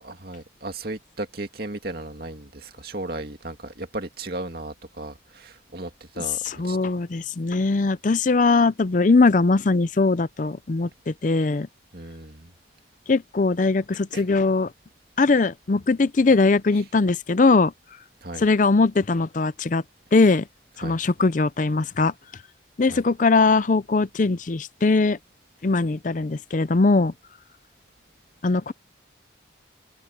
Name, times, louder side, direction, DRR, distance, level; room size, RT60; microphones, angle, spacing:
voice 1, 0.0-6.8 11.9-12.5 14.1-14.2 18.2-18.5 20.8-21.0 22.9-23.0, right 2 dB, 55° right, 2.3 m, -35 dB
voice 2, 6.4-11.7 13.1-14.7 15.2-17.7 18.4-19.8 20.1-20.4 20.8-22.1 22.8-25.2 25.6-27.1 28.4-28.7, left 3 dB, 45° left, 0.5 m, -20 dB
head